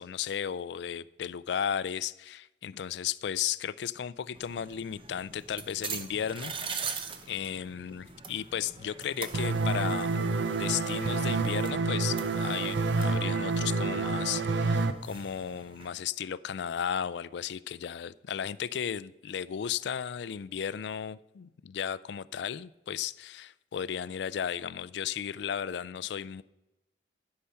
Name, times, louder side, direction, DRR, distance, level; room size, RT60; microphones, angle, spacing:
voice 1, 0.0-7.0 7.3-10.1 10.6-26.4, left 8 dB, 75° left, 0.3 m, -35 dB
sound 1, 4.3-15.9, right 6 dB, 30° right, 0.7 m, -43 dB
sound 2, 9.3-14.9, right 3 dB, 85° right, 0.6 m, -28 dB
11.5 x 5.7 x 5.6 m
head